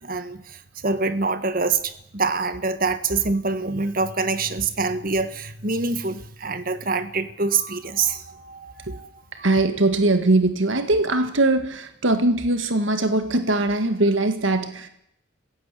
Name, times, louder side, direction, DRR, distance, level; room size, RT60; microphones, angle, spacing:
voice 1, 0.0-9.4, right 4 dB, 45° right, 12 dB, 1.6 m, -25 dB
voice 2, 9.4-14.9, right 2 dB, 75° right, 9 dB, 1.8 m, -21 dB
26.0 x 16.0 x 8.5 m, 0.76 s
head